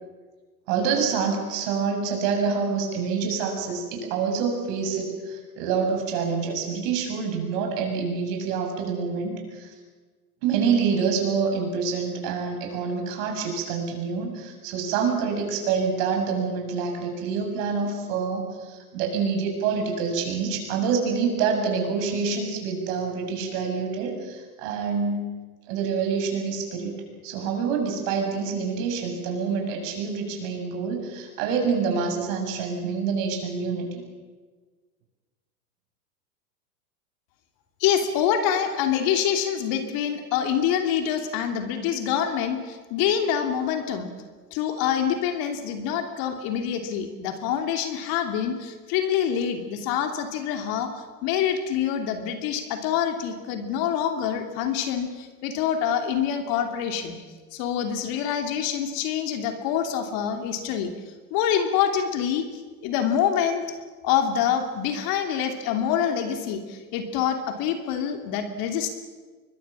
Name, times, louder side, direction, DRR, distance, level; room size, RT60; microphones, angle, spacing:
voice 1, 0.7-9.7 10.4-25.2 25.7-27.0 27.2-33.9, right 5 dB, 55° right, 3 dB, 7.1 m, -27 dB
voice 2, 37.8-44.1 44.5-57.2 57.5-60.9 61.3-62.5 62.8-63.7 64.0-68.9, left 8 dB, 45° left, 6 dB, 2.9 m, -26 dB
24.5 x 21.0 x 7.4 m, 1.4 s
hypercardioid pair, 110°, 47 cm